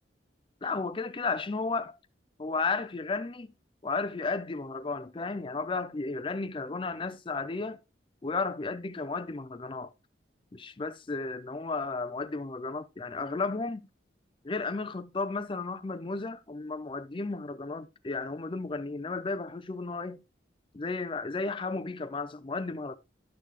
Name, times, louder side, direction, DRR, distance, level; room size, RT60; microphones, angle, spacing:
voice 1, 0.6-2.0 2.4-3.5 3.8-7.8 8.2-9.9 10.5-13.9 14.4-20.2 20.7-23.0, left 3 dB, 30° left, 0.5 m, -33 dB
11.5 x 6.6 x 3.0 m
head